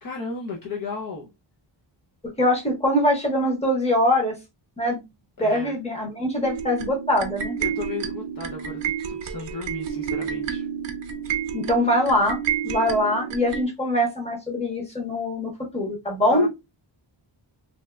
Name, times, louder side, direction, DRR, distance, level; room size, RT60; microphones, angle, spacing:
voice 1, 0.0-1.3 5.4-5.8 7.6-10.7 16.3-16.5, left 4 dB, 45° left, 0.6 m, -34 dB
voice 2, 2.4-4.4 4.8-5.0 5.4-7.6 11.5-12.4 12.6-16.5, left 1 dB, 15° left, 1.0 m, -23 dB
sound 1, 6.4-13.7, right 8 dB, 65° right, 0.6 m, -30 dB
3.1 x 2.7 x 2.2 m
wide cardioid pair, 180°, 47 cm